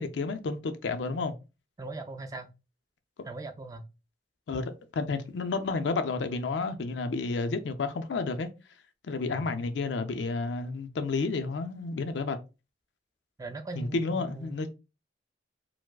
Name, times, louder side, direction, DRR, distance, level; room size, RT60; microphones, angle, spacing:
voice 1, 0.0-1.3 4.5-8.5 9.0-12.4 13.7-14.7, left 3 dB, 80° left, 0.4 m, -31 dB
voice 2, 1.8-2.5 3.2-3.9 9.3-9.6 13.4-14.7, right 2 dB, 20° right, 0.3 m, -40 dB
4.6 x 2.0 x 2.2 m
head